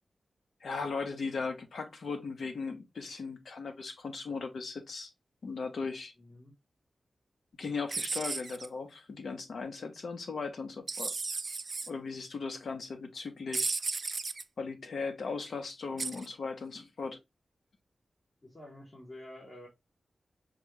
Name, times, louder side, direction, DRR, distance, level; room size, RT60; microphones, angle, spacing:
voice 1, 0.6-5.1 5.4-6.1 7.6-11.1 11.9-13.8 14.6-17.2, left 4 dB, 80° left, 0.9 m, -37 dB
voice 2, 6.2-6.5 18.4-19.7, left 1 dB, 30° left, 1.2 m, -49 dB
sound 1, 7.9-8.7 10.9-11.9 13.5-14.4 16.0-16.3, right 4 dB, 45° right, 0.3 m, -34 dB
5.1 x 2.4 x 3.2 m
wide cardioid pair, 135°, 0 cm